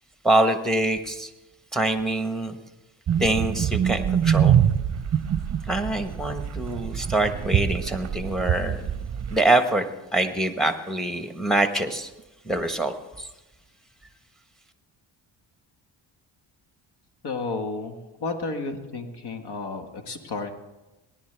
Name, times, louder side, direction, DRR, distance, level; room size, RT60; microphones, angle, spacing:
voice 1, 0.2-1.3 1.7-2.6 3.2-4.6 5.6-8.8 9.3-9.9 10.1-12.1 12.4-13.3, right 2 dB, ahead, 7 dB, 1.2 m, -24 dB
sound 1, 3.1-9.4, right 9 dB, 35° right, 0.7 m, -24 dB
voice 2, 17.2-20.5, left 3 dB, 60° left, 6 dB, 1.7 m, -32 dB
18.5 x 11.0 x 3.4 m, 1.1 s
cardioid pair, 85°, 46 cm